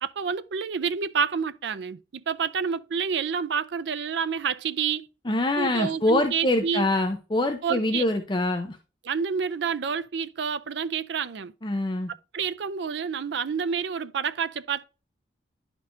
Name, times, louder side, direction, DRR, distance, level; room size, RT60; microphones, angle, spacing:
voice 1, 0.0-5.1 5.6-6.9 7.6-8.0 9.0-11.5 12.1-14.9, right 6 dB, 75° right, 0.5 m, -28 dB
voice 2, 5.3-8.8 11.6-12.1, left 1 dB, 25° left, 0.6 m, -25 dB
10.5 x 4.4 x 2.6 m
head